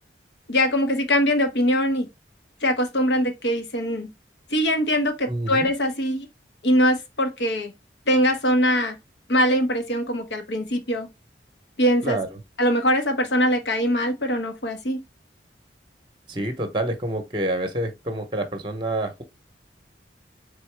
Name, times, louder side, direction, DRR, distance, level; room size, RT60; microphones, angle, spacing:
voice 1, 0.5-2.1 2.6-4.1 4.5-6.3 6.6-7.7 8.1-9.0 9.3-11.1 11.8-12.2 12.6-15.0, equal, 75° left, 1.0 m, -22 dB
voice 2, 5.3-5.7 12.0-12.4 16.3-19.2, right 1 dB, 25° right, 0.8 m, -27 dB
4.1 x 3.6 x 3.3 m
head